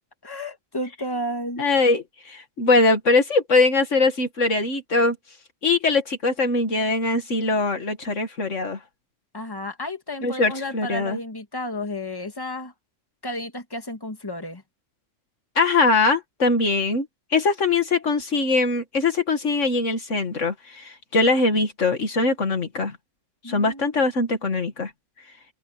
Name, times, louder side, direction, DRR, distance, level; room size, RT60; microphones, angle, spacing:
voice 1, 0.2-1.7 9.3-12.7 13.2-14.6 23.4-23.9, left 1 dB, 15° left, 2.1 m, -32 dB
voice 2, 1.6-5.2 5.6-8.8 10.2-11.2 15.6-23.0 23.4-24.9, left 3 dB, 70° left, 2.2 m, -22 dB
open air
omnidirectional pair, 1.3 m